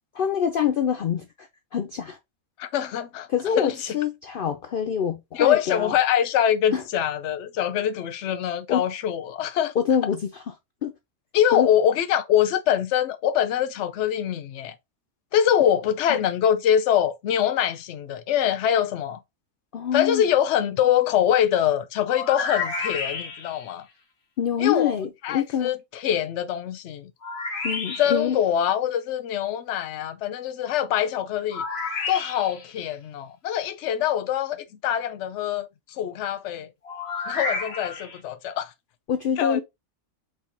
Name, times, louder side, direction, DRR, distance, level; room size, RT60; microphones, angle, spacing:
voice 1, 0.1-1.5 1.7-2.2 3.3-5.9 6.7-6.8 8.7-8.8 9.8-10.3 10.8-10.9 11.5-11.7 19.7-20.2 24.4-25.7 27.6-28.4 39.1-39.6, left 8 dB, 80° left, 0.4 m, -25 dB
voice 2, 2.6-3.3 3.6-4.0 5.3-9.7 11.3-14.7 15.3-19.2 19.9-23.8 24.6-24.9 25.2-27.1 28.0-31.6 32.1-35.7 36.0-36.7 37.3-38.7 39.4-39.6, left 10 dB, 65° left, 0.8 m, -24 dB
sound 1, 22.0-23.7 27.2-28.4 31.5-32.7 36.8-38.2, left 4 dB, 50° left, 1.2 m, -31 dB
4.6 x 3.5 x 2.7 m
omnidirectional pair, 1.5 m